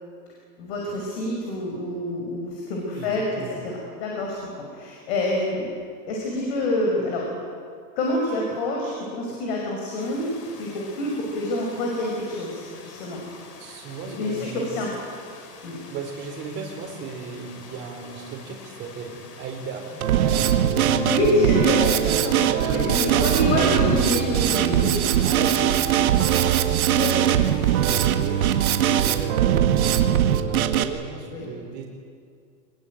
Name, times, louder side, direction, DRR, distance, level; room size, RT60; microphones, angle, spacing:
voice 1, 0.6-5.7 6.1-7.2 8.0-13.2 14.1-14.9 15.6-15.8 20.9-25.1 27.0-27.2 31.3-31.5, left 1 dB, 40° left, -1 dB, 5.6 m, -27 dB
voice 2, 2.9-3.6 13.6-14.7 15.9-19.9 20.2-21.0 22.3-23.8 25.2-26.8 27.1-28.5 29.1-31.9, right 5 dB, 20° right, 1 dB, 4.0 m, -35 dB
sound 1, 10.0-29.3, left 4 dB, 75° left, 4.7 m, -46 dB
Drum kit, 20.0-30.8, right 10 dB, 60° right, 1.8 m, -21 dB
24.0 x 21.0 x 9.1 m, 2.2 s
supercardioid pair, 170°, 48 cm